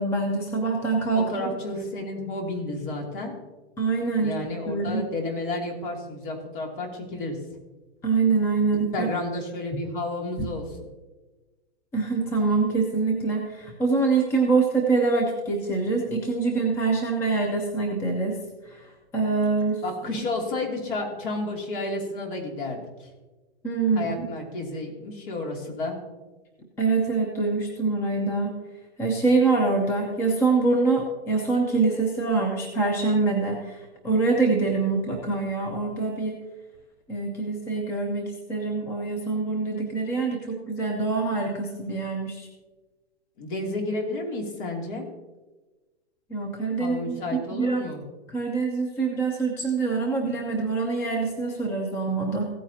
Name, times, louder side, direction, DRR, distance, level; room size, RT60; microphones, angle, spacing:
voice 1, 0.0-1.5 3.8-4.3 4.7-5.0 8.0-9.1 9.7-9.8 10.4-10.5 11.9-18.4 18.6-19.8 20.1-20.2 23.6-24.1 26.8-28.5 29.0-36.4 37.1-42.5 46.3-47.8 48.3-52.5, right 4 dB, 10° left, 1 dB, 0.6 m, -25 dB
voice 2, 1.1-3.4 4.1-7.4 8.9-10.6 19.8-23.1 23.9-26.0 43.4-45.0 46.8-48.0, left 2 dB, 50° left, 0 dB, 2.8 m, -31 dB
15.5 x 9.1 x 2.8 m, 1.2 s
hypercardioid pair, 160°, 33 cm